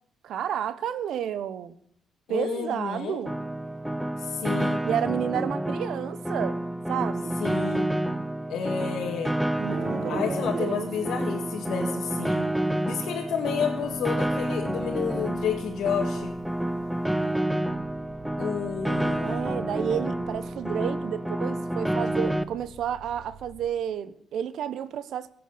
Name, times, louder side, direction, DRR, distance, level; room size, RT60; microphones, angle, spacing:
voice 1, 0.2-1.7 2.3-3.3 4.8-6.6 6.9-7.4 9.6-10.9 19.2-25.3, right 9 dB, 75° right, 1.2 m, -31 dB
voice 2, 2.3-3.2 4.2-4.8 7.4-7.9 8.5-9.3 10.1-12.4 12.8-16.3 18.4-19.5, left 7 dB, 75° left, 2.0 m, -30 dB
Piano, 3.3-22.4, right 1 dB, 5° right, 1.0 m, -29 dB
Guitar, 9.6-16.2, right 4 dB, 55° right, 4.9 m, -43 dB
sound 1, 13.4-23.7, right 2 dB, 20° right, 5.2 m, -51 dB
16.5 x 9.3 x 7.0 m
cardioid pair, 90°, 0 cm